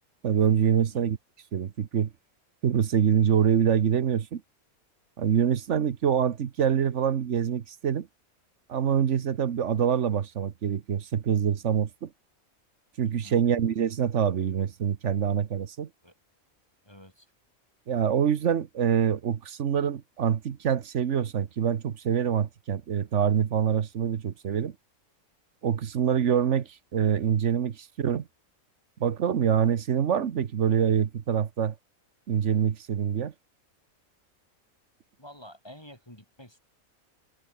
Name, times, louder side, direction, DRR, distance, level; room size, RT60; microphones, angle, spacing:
voice 1, 0.2-1.2 1.5-2.1 2.6-4.4 5.2-8.1 8.7-12.1 13.0-15.9 17.9-24.7 25.6-28.3 29.0-31.7 32.3-33.3, right 8 dB, 60° right, 1.3 m, -25 dB
voice 2, 13.0-13.4 16.0-16.1 16.8-17.3 35.2-36.6, equal, 15° left, 4.7 m, -49 dB
omnidirectional pair, 1.5 m